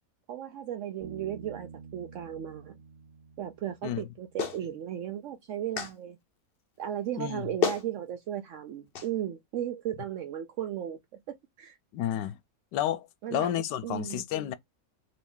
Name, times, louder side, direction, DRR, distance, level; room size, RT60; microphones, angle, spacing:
voice 1, 0.3-2.7 3.4-6.2 6.8-11.0 11.3-11.8 13.2-13.5 13.8-14.2, right 11 dB, 80° right, 0.6 m, -35 dB
Bass guitar, 1.0-4.5, right 6 dB, 30° right, 1.9 m, -49 dB
Clapping, 4.4-4.6 5.8-5.9 7.2-7.3 7.6-7.9 8.9-9.1, left 7 dB, 60° left, 0.6 m, -29 dB
voice 2, 7.2-7.5 11.9-12.4 12.7-14.5, left 11 dB, 80° left, 1.2 m, -31 dB
3.8 x 2.8 x 3.6 m
omnidirectional pair, 1.9 m